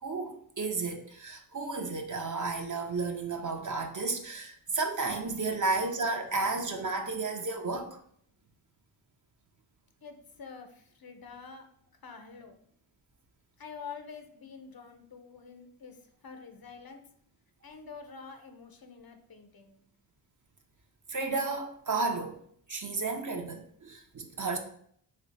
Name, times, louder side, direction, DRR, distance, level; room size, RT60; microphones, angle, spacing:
voice 1, 0.0-8.0 21.1-22.4 22.7-24.6, right 3 dB, 40° right, 4 dB, 0.6 m, -32 dB
voice 2, 10.0-11.6 12.0-12.5 13.6-17.0 17.6-19.8, left 5 dB, 50° left, 6 dB, 0.6 m, -47 dB
3.1 x 2.1 x 3.9 m, 0.64 s
cardioid pair, 40°, 48 cm